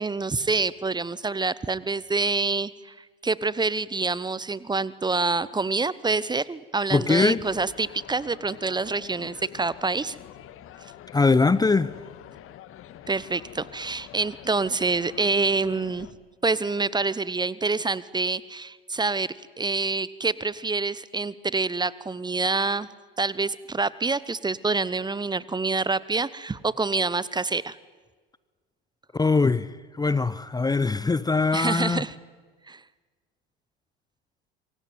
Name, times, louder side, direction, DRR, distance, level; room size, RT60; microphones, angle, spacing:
voice 1, 0.0-2.7 3.2-10.2 13.1-16.1 16.4-19.3 19.6-22.9 23.2-27.8 31.5-32.1 32.7-32.8, right 3 dB, 15° right, 1.0 m, -26 dB
voice 2, 6.9-7.4 11.1-11.9 29.1-32.1, left 4 dB, 15° left, 0.8 m, -22 dB
sound 1, 7.4-16.1, left 11 dB, 45° left, 1.7 m, -46 dB
26.5 x 23.5 x 9.4 m
hypercardioid pair, 75°, 30 cm